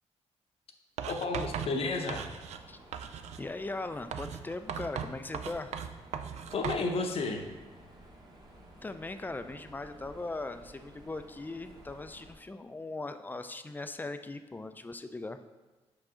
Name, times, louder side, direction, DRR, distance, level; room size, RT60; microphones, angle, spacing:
Writing, 1.0-2.7 2.9-3.5 4.1-6.9, right 7 dB, 75° right, 0.4 m, -38 dB
voice 1, 1.1-2.2 6.5-7.4, left 3 dB, 60° left, 4 dB, 0.8 m, -32 dB
Mechanisms, 1.3-12.3, right 1 dB, 35° right, 1.2 m, -54 dB
voice 2, 3.4-5.8 8.8-15.4, left 2 dB, 15° left, 9 dB, 0.4 m, -39 dB
5.7 x 4.8 x 3.8 m, 1.2 s
cardioid pair, 95°, 11 cm